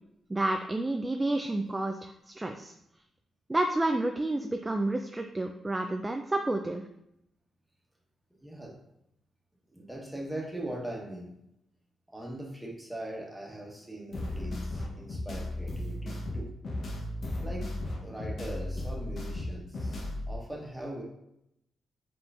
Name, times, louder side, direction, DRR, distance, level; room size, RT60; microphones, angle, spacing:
voice 1, 0.3-2.7 3.5-6.8, right 2 dB, 20° right, 5 dB, 0.3 m, -30 dB
voice 2, 8.4-8.8 9.7-11.4 12.1-16.5 17.4-17.7 18.0-20.0 20.3-21.0, right 1 dB, 5° right, -2 dB, 1.3 m, -40 dB
sound 1, 14.1-20.4, left 1 dB, 60° left, 0.9 m, -35 dB
4.7 x 3.7 x 2.5 m, 0.79 s
supercardioid pair, 60°, 0 cm